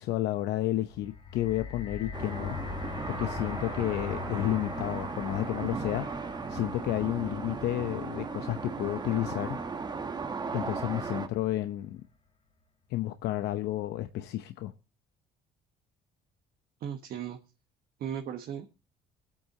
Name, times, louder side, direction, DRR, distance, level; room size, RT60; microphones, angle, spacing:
voice 1, 0.0-2.6 3.1-9.6 10.5-12.0 12.9-14.7, left 14 dB, 80° left, 0.8 m, -31 dB
sound 1, 0.9-11.1 11.8-11.9, left 5 dB, 35° left, 2.9 m, -43 dB
sound 2, 2.1-11.3, right 4 dB, 25° right, 1.1 m, -36 dB
voice 2, 16.8-17.4 18.0-18.7, right 9 dB, 60° right, 1.3 m, -36 dB
24.0 x 8.7 x 2.8 m
cardioid pair, 110°, 17 cm